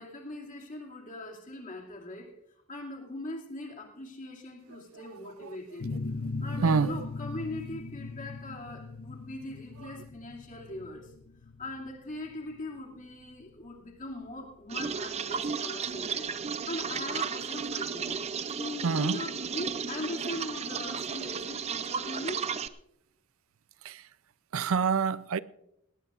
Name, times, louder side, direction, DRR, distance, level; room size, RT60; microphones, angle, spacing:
voice 1, 0.0-2.4 2.7-5.9 6.4-11.1 11.6-18.2 18.5-22.5, left 2 dB, 40° left, 2.5 m, -40 dB
sound 1, 5.8-15.2, left 3 dB, 60° left, 0.6 m, -39 dB
voice 2, 6.4-7.0 9.8-9.9 18.8-19.2 23.8-24.1 24.5-25.4, right 5 dB, 90° right, 0.5 m, -27 dB
sound 2, 14.7-22.7, right 6 dB, 30° right, 0.5 m, -34 dB
18.5 x 17.5 x 2.5 m
head